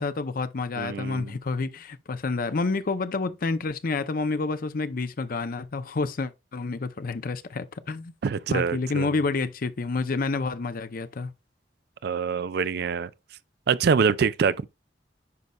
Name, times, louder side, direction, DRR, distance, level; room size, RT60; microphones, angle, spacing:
voice 1, 0.0-8.1 8.5-11.3, left 3 dB, 50° left, 0.6 m, -29 dB
voice 2, 0.8-1.3 8.2-9.1 12.0-13.1 13.7-14.6, right 6 dB, 60° right, 0.4 m, -25 dB
9.6 x 5.3 x 2.3 m
head